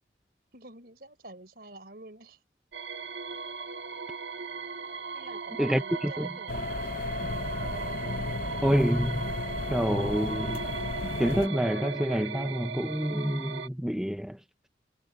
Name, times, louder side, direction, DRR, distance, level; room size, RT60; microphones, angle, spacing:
voice 1, 0.5-2.4 5.1-6.7, right 2 dB, 55° right, 4.8 m, -47 dB
sound 1, 2.7-13.7, right 5 dB, 85° right, 1.6 m, -38 dB
voice 2, 5.6-6.3 8.6-9.2 9.7-10.6 11.2-14.4, equal, 5° right, 0.6 m, -27 dB
sound 2, 6.5-11.5, left 2 dB, 50° left, 0.7 m, -33 dB
head